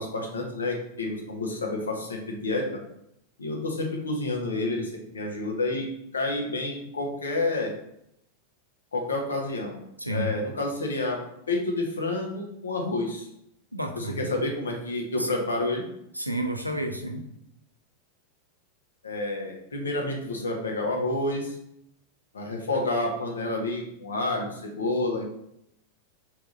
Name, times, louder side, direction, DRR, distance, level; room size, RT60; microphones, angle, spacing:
voice 1, 0.0-2.7 3.4-5.9 6.1-7.7 8.9-9.8 10.1-11.2 11.5-13.3 13.9-15.8 19.0-21.5 22.3-25.2, left 2 dB, 70° left, 1 dB, 0.9 m, -29 dB
voice 2, 10.0-10.3 13.7-14.3 15.2-15.3 16.1-17.2, right 1 dB, 90° right, 3 dB, 0.5 m, -31 dB
4.6 x 3.6 x 2.6 m, 0.76 s
figure-of-eight pair, 90°, 0 cm